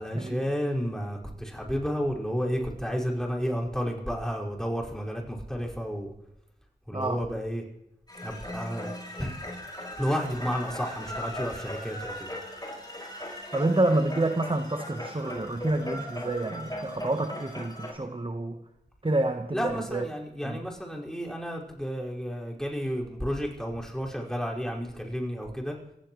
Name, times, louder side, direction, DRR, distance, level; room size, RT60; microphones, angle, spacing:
voice 1, 0.0-6.1 6.9-7.6 8.2-8.9 9.2-9.3 10.0-12.3 19.5-25.8, equal, 5° left, -3 dB, 5.1 m, -31 dB
sound 1, 8.1-17.9, left 1 dB, 20° left, 5.7 m, -38 dB
voice 2, 13.5-18.6 19.0-20.0 20.4-20.6, right 2 dB, 30° right, 6 dB, 1.1 m, -28 dB
27.0 x 15.5 x 3.1 m, 0.83 s
wide cardioid pair, 45°, 19 cm